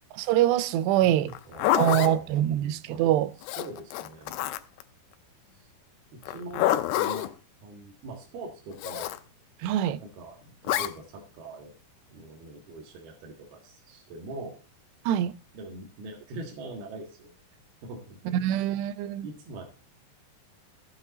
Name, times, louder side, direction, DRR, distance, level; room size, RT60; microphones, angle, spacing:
voice 1, 0.2-1.3 1.7-3.3 9.6-10.0 15.1-15.3 18.3-19.3, right 11 dB, 85° right, 2.9 m, -24 dB
voice 2, 1.0-2.4 2.9-3.1 3.6-4.4 5.5-5.7 6.1-7.3 7.6-9.1 10.0-11.7 12.1-14.6 15.5-17.3 17.8-18.7 19.2-19.7, right 2 dB, 70° right, 3.5 m, -42 dB
Zipper (clothing), 1.3-2.1 3.4-4.8 6.2-7.3 8.8-9.2 10.7-10.9, left 14 dB, 85° left, 2.8 m, -27 dB
14.5 x 8.4 x 4.0 m
omnidirectional pair, 4.8 m